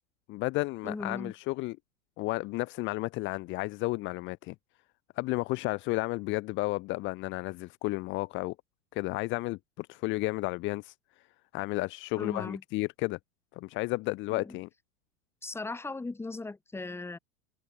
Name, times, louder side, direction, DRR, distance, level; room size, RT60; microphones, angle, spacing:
voice 1, 0.3-1.8 2.2-4.5 5.2-8.5 8.9-10.9 11.5-13.2 13.6-14.7, left 21 dB, 25° left, 1.3 m, -32 dB
voice 2, 0.8-1.3 12.2-12.6 14.3-14.5 15.4-17.2, left 3 dB, 5° left, 4.4 m, -38 dB
supercardioid pair, 160°, 42 cm